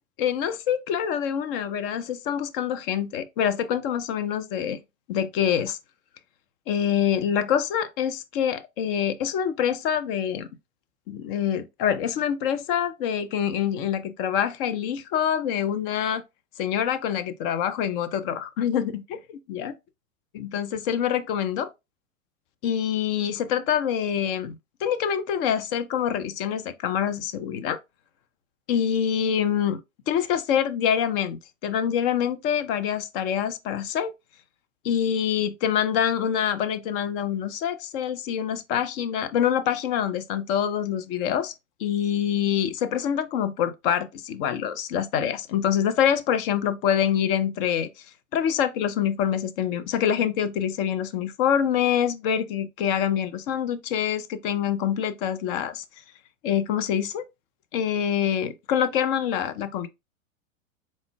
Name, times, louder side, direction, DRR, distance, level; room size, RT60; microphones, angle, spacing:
voice 1, 0.2-4.8 5.1-5.8 6.7-10.5 11.1-16.2 16.6-19.7 20.3-21.7 22.6-27.8 28.7-29.8 30.1-34.1 34.8-41.5 41.8-47.9 48.3-55.8 56.4-57.2 57.7-59.9, left 9 dB, 45° left, 0.6 m, -25 dB
4.2 x 3.6 x 2.2 m
hypercardioid pair, 100°, 41 cm